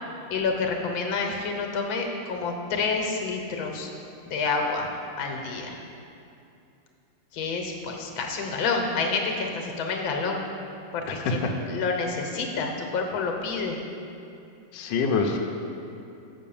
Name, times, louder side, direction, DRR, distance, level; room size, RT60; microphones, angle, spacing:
voice 1, 0.3-3.9 4.2-4.9 5.2-5.8 7.3-10.4 10.9-11.4 11.7-13.8, left 4 dB, 90° left, 2 dB, 1.7 m, -28 dB
voice 2, 11.1-11.5 14.7-15.4, left 4 dB, 70° left, 1 dB, 1.3 m, -25 dB
6.4 x 6.1 x 7.0 m, 2.7 s
omnidirectional pair, 2.1 m